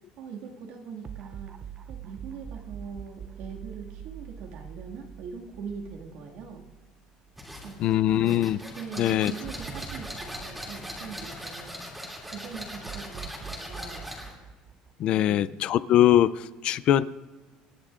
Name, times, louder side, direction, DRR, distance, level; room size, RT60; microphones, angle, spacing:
voice 1, 0.2-1.6 1.9-6.6 7.6-8.1 8.8-11.8 12.3-14.1 15.2-15.5, right 6 dB, 65° right, 1 dB, 1.9 m, -42 dB
sound 1, 1.0-7.4 7.8-7.9 9.4-11.9 12.8-15.6, right 8 dB, 30° right, 0.4 m, -44 dB
sound 2, 7.4-14.4, equal, 5° right, 2.4 m, -40 dB
voice 2, 7.8-8.6 9.0-9.3 15.0-17.0, left 12 dB, 45° left, 17 dB, 0.4 m, -22 dB
27.0 x 9.9 x 2.5 m, 1.3 s
cardioid pair, 160°, 2 cm